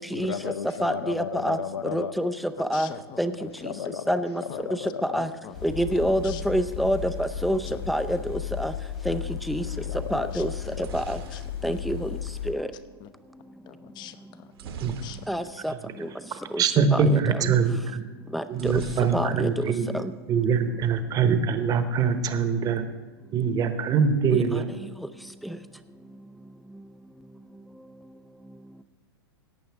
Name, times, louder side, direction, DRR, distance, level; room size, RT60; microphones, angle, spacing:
voice 1, 0.1-2.1 3.4-5.2 9.7-10.9, left 8 dB, 90° left, 9 dB, 0.6 m, -35 dB
voice 2, 0.8-1.6 1.9-2.3 2.6-2.9 3.2-3.3 4.1-4.4 5.1-5.3 5.6-7.6 7.9-8.2 8.6-8.7 9.1-9.2 9.5-9.6 10.1-10.5 10.9-11.2 11.6-12.1 12.5-12.7 15.3-15.7 16.5-16.6 17.1-17.2 18.3-18.7 19.1-19.5 24.3-24.4, equal, ahead, 10 dB, 0.5 m, -26 dB
voice 3, 2.6-3.3 3.6-3.7 4.5-4.7 5.1-6.4 6.9-7.0 8.1-8.3 9.6-10.8 11.3-11.4 12.0-12.2 13.0-13.1 13.7-14.5 15.0-15.2, left 11 dB, 35° left, 12 dB, 0.8 m, -44 dB
sound 1, 5.5-12.5, left 10 dB, 65° left, 3.4 m, -35 dB
sound 2, 10.5-12.6 14.5-15.7 16.0-16.1 16.4-16.6 18.5-19.7 20.0-20.6, right 5 dB, 70° right, 1.7 m, -42 dB
voice 4, 16.3-18.0 18.5-19.9 20.3-22.8 23.3-24.7, right 6 dB, 30° right, 9 dB, 1.1 m, -23 dB
17.5 x 8.6 x 3.5 m, 1.3 s
hypercardioid pair, 120°, 13 cm